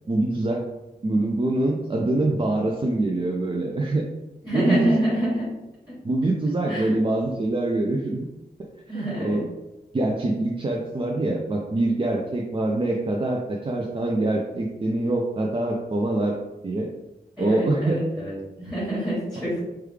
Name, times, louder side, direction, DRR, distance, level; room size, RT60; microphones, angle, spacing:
voice 1, 0.1-0.7 1.0-4.0 4.5-4.9 6.0-8.3 8.9-9.4 9.9-16.3 16.6-16.9 17.4-18.0, right 2 dB, 35° right, -1 dB, 0.4 m, -24 dB
voice 2, 4.4-5.5 6.7-7.0 8.9-9.5 17.4-19.6, right 1 dB, ahead, -8 dB, 1.1 m, -26 dB
3.2 x 2.3 x 3.3 m, 1.0 s
wide cardioid pair, 95°, 16 cm